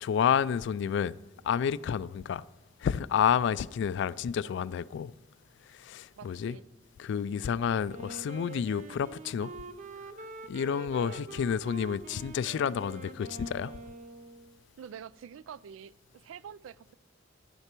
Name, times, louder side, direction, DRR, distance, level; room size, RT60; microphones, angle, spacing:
voice 1, 0.0-1.2 1.4-2.4 2.8-5.1 5.7-6.6 7.0-9.5 10.5-13.7, left 7 dB, 65° left, 0.3 m, -30 dB
voice 2, 6.2-6.6 11.0-11.3 14.8-16.9, right 8 dB, 85° right, 0.3 m, -46 dB
Wind instrument woodwind instrument, 7.9-14.6, right 3 dB, 40° right, 0.6 m, -45 dB
11.0 x 9.8 x 4.5 m
head